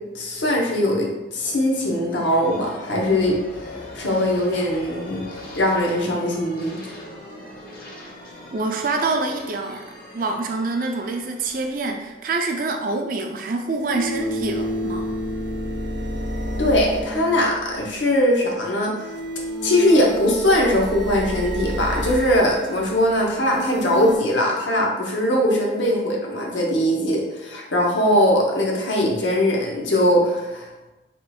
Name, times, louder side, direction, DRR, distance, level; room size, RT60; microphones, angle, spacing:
voice 1, 0.1-7.0 16.6-19.1 19.6-30.7, left 1 dB, 85° left, -1 dB, 0.8 m, -21 dB
sound 1, 1.4-12.9, left 1 dB, 50° left, 0.7 m, -40 dB
voice 2, 8.5-9.9 10.1-15.1, right 3 dB, 50° right, 4 dB, 0.4 m, -26 dB
sound 2, 11.4-11.5 13.6-18.1 18.9-24.2, equal, 75° right, 0.7 m, -30 dB
3.6 x 2.3 x 4.1 m, 1.1 s
head